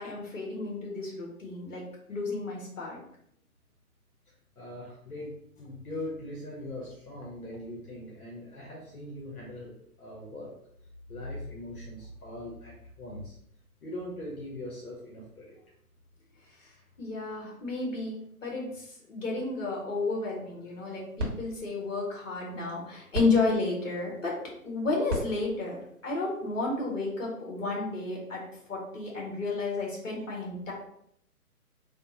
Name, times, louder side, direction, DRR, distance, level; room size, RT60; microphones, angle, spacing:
voice 1, 0.0-1.8 2.1-3.0 16.6-16.7 17.0-24.3 24.6-28.4 28.7-30.7, left 3 dB, 55° left, -2 dB, 1.3 m, -32 dB
voice 2, 4.6-10.5 11.1-13.4 13.8-15.6, left 1 dB, 70° left, -4 dB, 1.0 m, -41 dB
sound 1, 20.6-27.0, equal, 45° right, 0.9 m, -40 dB
3.3 x 2.1 x 2.7 m, 0.70 s
figure-of-eight pair, 140°, 46 cm